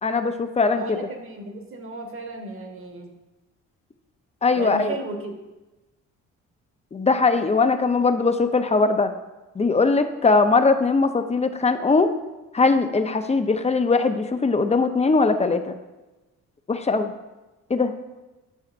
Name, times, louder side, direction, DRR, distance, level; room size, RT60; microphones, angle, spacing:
voice 1, 0.0-0.8 4.4-5.0 6.9-9.1 9.6-12.1 12.5-15.7 16.7-17.1 17.7-17.9, left 4 dB, 20° left, 8 dB, 0.6 m, -20 dB
voice 2, 0.7-3.1 4.5-5.3, right 2 dB, 45° right, 3 dB, 1.4 m, -34 dB
11.5 x 5.7 x 2.5 m, 1.1 s
cardioid pair, 90°, 30 cm